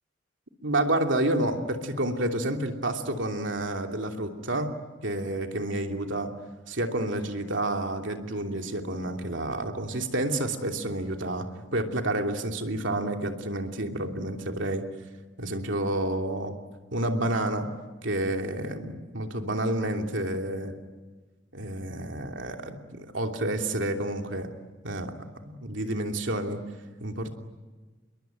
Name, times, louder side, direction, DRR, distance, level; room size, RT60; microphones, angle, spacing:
voice 1, 0.6-4.7 5.0-6.3 6.7-11.5 11.7-14.8 15.4-16.6 16.9-17.7 18.0-20.7 21.5-24.5 24.8-25.1 25.4-26.6 27.0-27.3, right 1 dB, 70° right, 4 dB, 3.0 m, -29 dB
28.0 x 22.5 x 9.3 m, 1.3 s
head